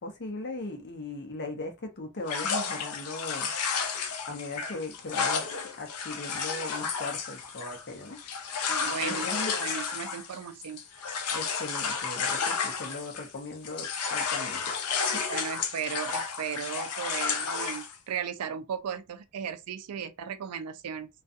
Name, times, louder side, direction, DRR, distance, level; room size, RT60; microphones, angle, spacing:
voice 1, 0.0-3.5 4.3-5.5 5.8-8.2 9.0-9.5 11.3-14.7 15.1-15.2, left 2 dB, 50° left, 0.7 m, -38 dB
sound 1, 2.3-13.4 13.6-18.0, left 5 dB, 85° left, 0.5 m, -32 dB
voice 2, 8.7-10.8 15.3-21.1, right 7 dB, 90° right, 0.4 m, -36 dB
2.4 x 2.3 x 2.6 m
head